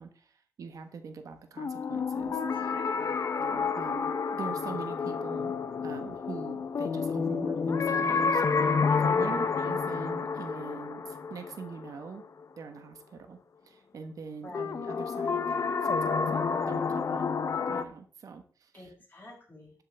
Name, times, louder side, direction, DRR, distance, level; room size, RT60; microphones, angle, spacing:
voice 1, 0.0-2.7 3.4-5.5 5.8-12.2 12.6-13.4 13.6-17.3 17.7-18.9, right 5 dB, 75° right, 7 dB, 1.2 m, -43 dB
sound 1, 1.6-12.4 14.5-17.8, left 5 dB, 60° left, 0.8 m, -29 dB
voice 2, 2.5-3.2 9.1-9.4 14.4-14.7 18.7-19.7, left 2 dB, 35° left, -4 dB, 6.1 m, -47 dB
12.0 x 7.8 x 3.4 m, 0.43 s
wide cardioid pair, 100°, 6 cm